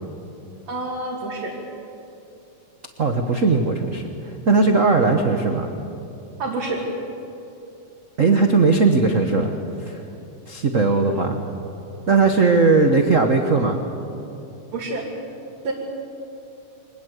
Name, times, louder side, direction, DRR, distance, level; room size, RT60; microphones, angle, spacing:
voice 1, 0.7-1.5 4.8-4.9 6.4-6.8 14.7-15.1 15.6-15.7, right 2 dB, 60° right, -4 dB, 3.7 m, -28 dB
voice 2, 3.0-5.7 8.2-10.0 10.5-11.4 12.1-13.8, right 3 dB, 85° right, 5 dB, 0.7 m, -18 dB
25.0 x 20.0 x 8.2 m, 2.8 s
omnidirectional pair, 3.4 m